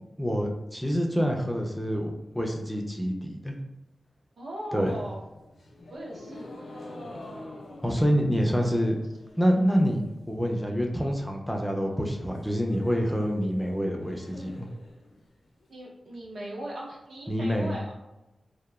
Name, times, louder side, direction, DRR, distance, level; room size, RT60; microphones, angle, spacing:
voice 1, 0.2-3.6 4.7-5.0 7.8-9.0 9.4-14.7 17.3-17.7, equal, ahead, 0 dB, 0.3 m, -27 dB
voice 2, 4.4-5.2 5.9-6.5 6.9-7.3 15.7-17.9, right 1 dB, 90° right, -4 dB, 0.6 m, -39 dB
sound 1, 4.7-9.8 10.1-10.6 10.9-11.0 11.3-11.4 11.7-15.7, left 1 dB, 90° left, 0.4 m, -47 dB
2.9 x 2.0 x 2.2 m, 1.0 s
wide cardioid pair, 120°, 0 cm